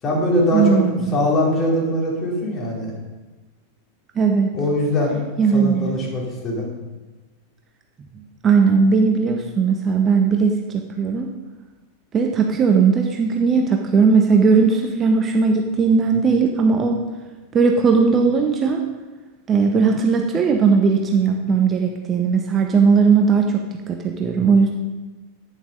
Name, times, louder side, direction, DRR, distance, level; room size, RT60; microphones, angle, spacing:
voice 1, 0.0-0.8 1.1-2.9 4.5-5.2 5.5-6.7, left 1 dB, 25° left, -3 dB, 4.2 m, -21 dB
voice 2, 0.5-1.1 4.2-4.5 5.4-5.9 8.4-11.3 12.1-17.0 17.5-18.8 19.5-24.7, right 5 dB, 25° right, 3 dB, 1.0 m, -18 dB
11.0 x 9.7 x 5.1 m, 1.2 s
figure-of-eight pair, 90°, 0 cm